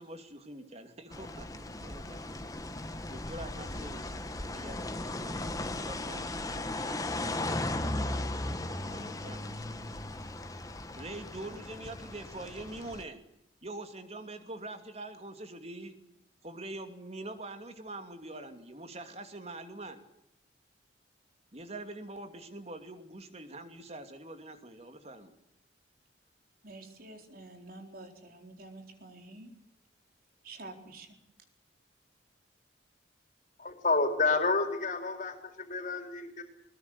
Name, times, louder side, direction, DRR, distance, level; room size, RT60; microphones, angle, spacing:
voice 1, 0.0-2.5 3.1-5.5 5.8-7.2 7.5-8.5 8.8-9.7 10.9-13.2 13.6-15.9 16.4-20.0 21.5-25.3, right 2 dB, 35° right, 7 dB, 2.7 m, -45 dB
sound 1, 1.1-13.0, left 2 dB, 20° left, 1.4 m, -37 dB
voice 2, 26.6-29.5 30.4-31.2, right 2 dB, 50° right, 5 dB, 4.2 m, -48 dB
voice 3, 33.6-36.4, left 3 dB, 45° left, 5 dB, 4.1 m, -29 dB
21.0 x 21.0 x 8.2 m, 0.81 s
head